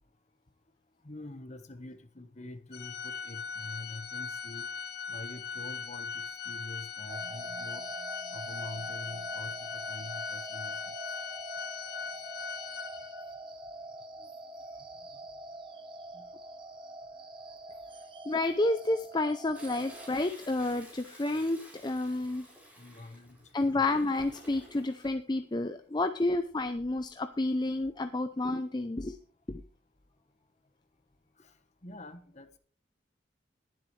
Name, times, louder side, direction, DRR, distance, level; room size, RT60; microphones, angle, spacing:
voice 1, 1.0-4.6 5.1-6.1 6.4-7.8 8.3-10.9 14.2-14.3 16.1-16.3 22.8-23.4 23.7-23.9 31.8-32.6, left 2 dB, 40° left, 10 dB, 1.3 m, -45 dB
Organ, 2.7-13.4, left 6 dB, 60° left, 1.1 m, -39 dB
sound 1, 7.1-20.1, right 1 dB, 30° right, 1.1 m, -44 dB
voice 2, 18.3-22.5 23.5-29.2 29.5-29.6, left 2 dB, 25° left, 8 dB, 0.6 m, -30 dB
Toilet flush, 19.5-25.1 26.6-27.0 27.5-27.6, equal, 10° right, 4.6 m, -53 dB
20.0 x 7.7 x 3.3 m, 0.43 s
head